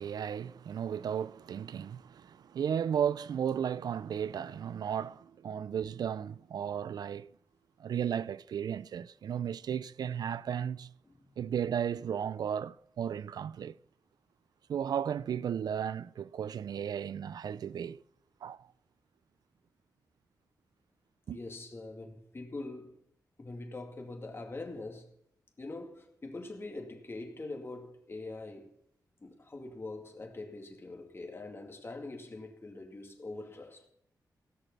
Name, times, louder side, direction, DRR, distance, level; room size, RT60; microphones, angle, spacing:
voice 1, 0.0-7.3 7.8-10.9 11.4-13.8 14.7-18.0 18.4-18.6 21.3-21.4, right 8 dB, 75° right, 0.4 m, -34 dB
voice 2, 11.1-11.5 21.3-23.0 23.4-25.1 25.6-28.7 29.2-33.9, left 2 dB, 35° left, 2.3 m, -43 dB
17.0 x 6.6 x 6.0 m
cardioid pair, 70°, 7 cm